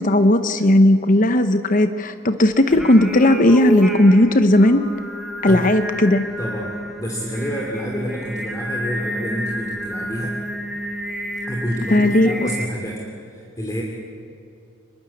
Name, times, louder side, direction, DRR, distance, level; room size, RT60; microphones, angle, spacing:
voice 1, 0.0-4.9 5.4-6.3 11.9-12.5, left 1 dB, 40° left, 10 dB, 0.8 m, -16 dB
Singing, 2.7-12.7, equal, ahead, 2.2 m, -29 dB
voice 2, 6.4-10.3 11.5-13.8, equal, 15° left, -1 dB, 2.8 m, -28 dB
24.5 x 22.0 x 8.5 m, 2.6 s
head